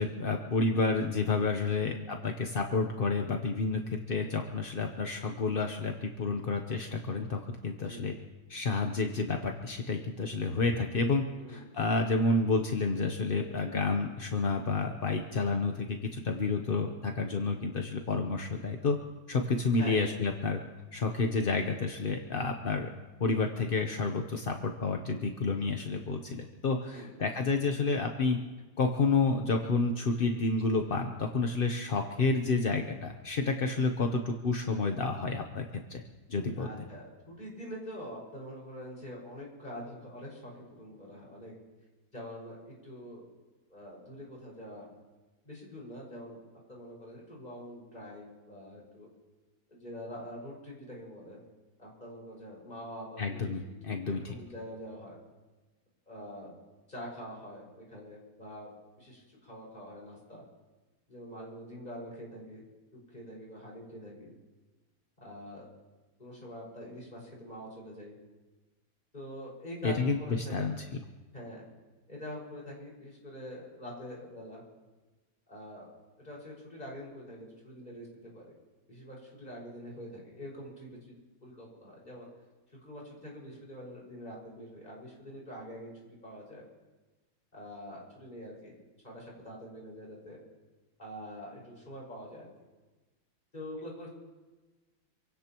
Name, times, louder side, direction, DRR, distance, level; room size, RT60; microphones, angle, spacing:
voice 1, 0.0-3.8 4.1-8.1 8.5-11.2 11.5-19.0 19.3-20.6 20.9-22.9 23.2-28.4 28.8-35.6 35.9-36.0 36.3-36.7 53.2-54.3 69.8-70.7, left 3 dB, 45° left, 4 dB, 0.7 m, -30 dB
voice 2, 36.6-41.5 42.1-43.2 43.7-44.9 45.4-46.4 46.7-49.1 49.7-51.4 51.8-53.7 54.1-55.2 56.1-56.5 56.9-58.7 59.0-60.4 61.1-62.6 62.9-64.3 65.2-65.7 66.2-68.1 69.1-70.7 71.3-71.6 72.1-74.6 75.5-75.9 76.2-78.5 78.9-81.2 81.4-82.3 82.8-85.9 86.2-86.6 87.5-88.7 89.0-90.4 91.0-92.5 93.5-94.1, equal, 20° left, -4 dB, 5.6 m, -45 dB
27.0 x 17.0 x 3.0 m, 1.2 s
omnidirectional pair, 2.1 m